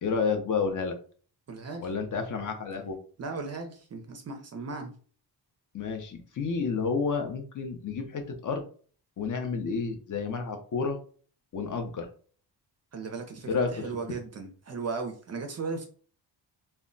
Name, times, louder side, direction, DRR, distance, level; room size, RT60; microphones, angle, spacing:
voice 1, 0.0-1.0 1.8-3.0 5.7-8.7 9.2-11.0 11.5-12.1 13.4-13.9, left 5 dB, 45° left, 0.5 m, -30 dB
voice 2, 1.5-1.9 3.2-4.9 12.9-15.8, right 4 dB, 40° right, 0.4 m, -36 dB
2.2 x 2.0 x 3.7 m
wide cardioid pair, 180°, 43 cm